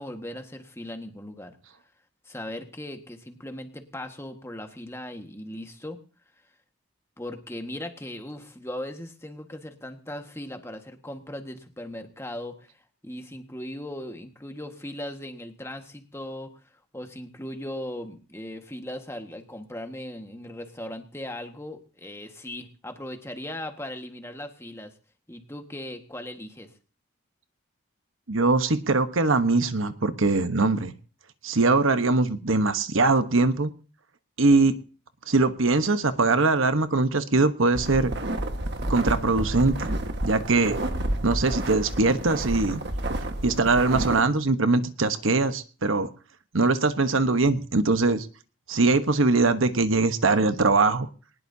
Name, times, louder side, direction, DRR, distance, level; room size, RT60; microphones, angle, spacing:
voice 1, 0.0-1.6 2.2-6.0 7.2-12.7 13.0-16.5 16.9-24.9 25.3-26.7, left 1 dB, 10° left, 5 dB, 1.6 m, -38 dB
voice 2, 28.3-30.9 31.4-33.7 34.4-34.7 35.3-38.1 38.9-39.9 40.2-40.8 41.2-42.8 43.4-46.1 46.5-48.3 48.7-51.1, right 3 dB, 70° right, 10 dB, 1.1 m, -22 dB
sound 1, 37.7-44.2, right 1 dB, 55° right, 1.6 m, -30 dB
20.5 x 19.5 x 2.8 m, 0.38 s
head